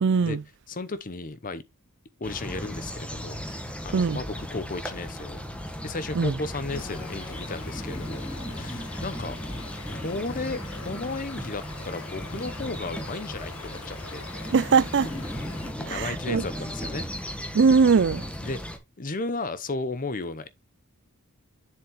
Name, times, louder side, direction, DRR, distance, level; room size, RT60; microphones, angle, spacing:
voice 1, 0.0-0.4 3.9-4.2 6.2-6.3 14.5-15.1 15.9-16.4 17.5-18.2, right 5 dB, 50° right, 0.4 m, -21 dB
voice 2, 0.7-1.6 2.2-5.4 5.8-8.3 8.5-9.4 9.9-14.2 15.8-17.0 18.4-18.6 19.0-20.5, left 3 dB, 40° left, 0.8 m, -34 dB
sound 1, 2.2-18.8, equal, 5° left, 1.2 m, -36 dB
Stream, 6.7-15.7, left 5 dB, 75° left, 1.3 m, -45 dB
7.3 x 7.2 x 3.0 m
head